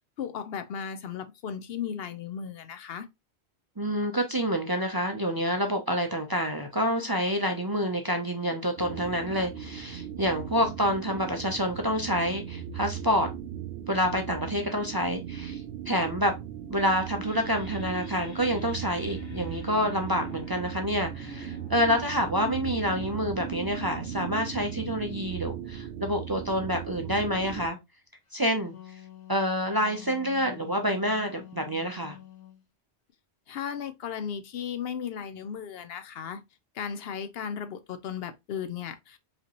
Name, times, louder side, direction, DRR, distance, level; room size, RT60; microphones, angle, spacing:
voice 1, 0.2-3.1 33.5-36.4 36.7-39.2, left 8 dB, 65° left, 0.7 m, -35 dB
voice 2, 3.8-13.3 13.9-15.6 15.9-16.3 16.7-27.8 28.3-28.7 29.3-32.2, equal, 30° right, 0.5 m, -28 dB
sound 1, 8.8-27.7, right 10 dB, 65° right, 0.8 m, -38 dB
sound 2, 17.3-26.6, left 1 dB, 85° left, 1.8 m, -46 dB
Wind instrument woodwind instrument, 28.5-32.6, left 13 dB, 30° left, 0.9 m, -47 dB
4.9 x 2.9 x 2.9 m
omnidirectional pair, 1.2 m